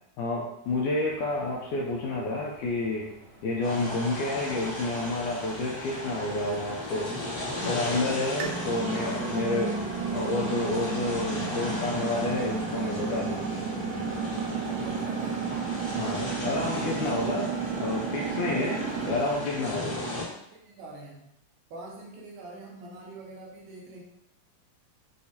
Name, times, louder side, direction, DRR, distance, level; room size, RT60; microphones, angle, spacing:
voice 1, 0.2-3.1 3.4-7.1 7.7-9.8 10.1-13.4 16.0-17.5 17.8-18.8 19.1-20.0, left 2 dB, 80° left, -3 dB, 1.8 m, -29 dB
sound 1, 0.6-19.1, left 1 dB, 50° right, 1.5 m, -53 dB
sound 2, 3.6-20.2, left 1 dB, 55° left, 1.0 m, -36 dB
sound 3, 8.4-19.3, right 5 dB, 90° right, 2.5 m, -32 dB
voice 2, 14.4-15.4 18.2-21.3 21.7-24.0, right 2 dB, 75° right, -3 dB, 2.2 m, -45 dB
6.5 x 2.7 x 2.8 m, 0.79 s
omnidirectional pair, 4.1 m